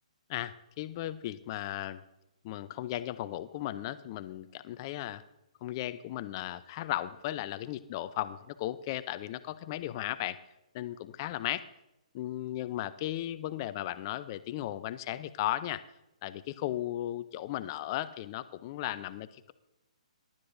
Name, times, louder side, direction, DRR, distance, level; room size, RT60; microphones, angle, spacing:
voice 1, 0.3-2.0 2.4-5.2 5.6-10.4 10.7-11.7 12.1-15.8 16.2-19.5, left 14 dB, 35° left, 13 dB, 0.6 m, -36 dB
23.0 x 12.0 x 2.6 m, 0.91 s
figure-of-eight pair, 130°, 4 cm